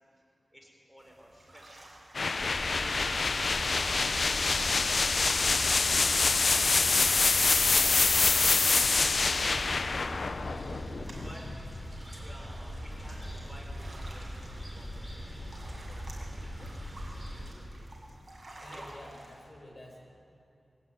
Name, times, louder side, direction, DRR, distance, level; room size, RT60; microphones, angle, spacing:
voice 1, 0.5-1.9 2.5-4.6 5.2-6.5 8.7-10.2 10.7-11.8 12.2-14.5 14.7-18.4 18.7-18.8, equal, 5° right, 0 dB, 5.4 m, -54 dB
sound 1, 1.0-19.5, right 1 dB, 30° right, 7.8 m, -53 dB
sound 2, 2.1-11.9, left 4 dB, 60° left, 0.6 m, -26 dB
sound 3, 2.4-17.5, equal, 10° left, 6.7 m, -41 dB
voice 2, 7.7-8.5 18.6-20.0, left 1 dB, 45° left, 0 dB, 6.8 m, -50 dB
24.5 x 21.5 x 9.8 m, 2.7 s
wide cardioid pair, 75°, 0 cm